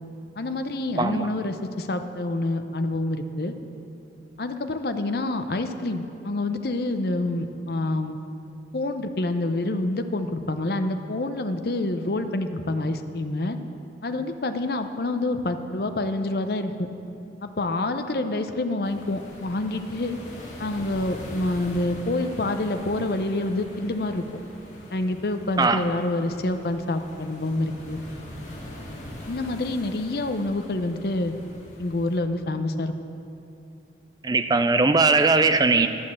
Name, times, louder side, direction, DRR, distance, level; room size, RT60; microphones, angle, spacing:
voice 1, 0.4-3.5 4.4-8.2 8.7-13.6 14.0-16.9 17.4-20.2 20.6-24.2 24.9-28.0 29.3-31.3 31.8-32.9, left 2 dB, 55° left, 7 dB, 0.6 m, -27 dB
voice 2, 1.0-1.3 25.6-25.8 34.2-35.9, right 3 dB, 20° right, 9 dB, 0.4 m, -19 dB
sound 1, 18.8-32.2, left 1 dB, 40° left, 1.7 m, -42 dB
11.0 x 6.4 x 7.4 m, 2.7 s
head